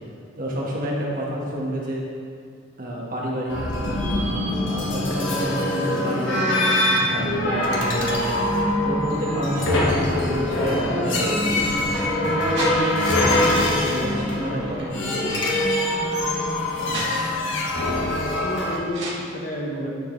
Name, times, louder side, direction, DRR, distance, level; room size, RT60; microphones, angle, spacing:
voice 1, 0.4-2.0 2.8-4.0 4.6-8.4 8.8-11.5 12.1-15.4, equal, 45° right, -4 dB, 1.5 m, -29 dB
sound 1, 3.5-18.8, left 1 dB, 65° left, 1.3 m, -23 dB
sound 2, 7.2-18.1, equal, ahead, 0.4 m, -34 dB
sound 3, 11.3-13.2 13.9-16.1 16.5-17.6 18.9-19.1, right 2 dB, 65° right, 1.8 m, -36 dB
voice 2, 18.2-19.9, left 1 dB, 40° left, -2 dB, 1.2 m, -31 dB
11.0 x 6.9 x 3.3 m, 2.3 s
head